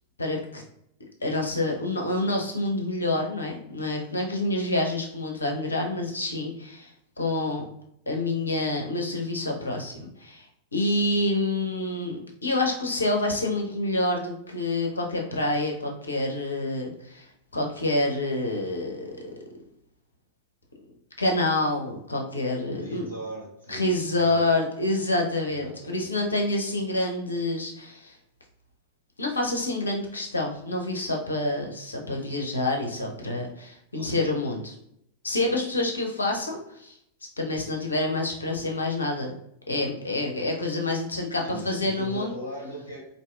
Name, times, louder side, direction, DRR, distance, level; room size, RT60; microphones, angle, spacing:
voice 1, 0.2-0.6 1.2-6.9 7.2-7.6 8.1-10.5 10.7-19.3 21.2-23.1 23.7-28.1 29.2-34.7 35.2-37.0 37.4-39.3 39.7-42.3, left 2 dB, 75° left, 1 dB, 0.6 m, -27 dB
voice 2, 22.7-24.5 25.5-26.2 26.7-26.8 33.9-34.1 35.4-35.5 41.4-43.1, right 1 dB, 85° right, -5 dB, 1.5 m, -39 dB
4.1 x 2.6 x 2.3 m, 0.75 s
figure-of-eight pair, 90°, 0 cm